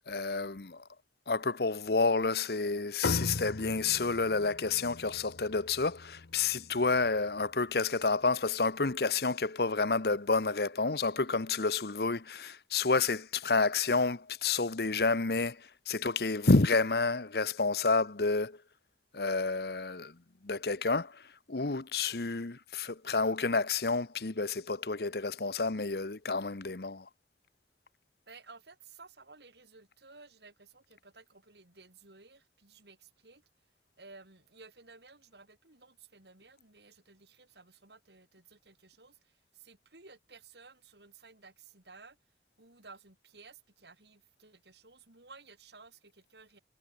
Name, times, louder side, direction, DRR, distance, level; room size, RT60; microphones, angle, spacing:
voice 1, 0.1-0.8 1.3-18.6 19.1-20.2 20.4-21.2 21.5-27.1, left 4 dB, 60° left, 1.0 m, -29 dB
sound 1, 3.0-7.8, left 3 dB, 90° left, 0.9 m, -39 dB
voice 2, 28.3-33.4 34.0-42.2 42.6-46.6, right 4 dB, 70° right, 4.3 m, -55 dB
head